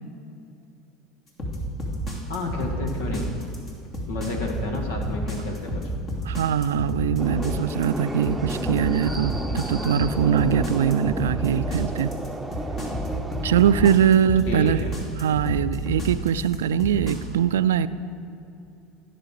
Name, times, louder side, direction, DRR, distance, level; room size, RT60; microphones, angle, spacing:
sound 1, 1.4-17.2, left 1 dB, 40° left, 2.7 m, -30 dB
voice 1, 2.3-3.3 4.1-5.8 14.5-14.8, left 2 dB, 85° left, 2 dB, 1.8 m, -30 dB
voice 2, 6.3-12.1 13.4-14.8 15.2-17.9, right 9 dB, 90° right, 14 dB, 0.3 m, -22 dB
sound 2, 7.2-14.0, right 1 dB, 5° right, 0.9 m, -32 dB
16.0 x 6.7 x 4.9 m, 2.7 s
hypercardioid pair, 90°, 0 cm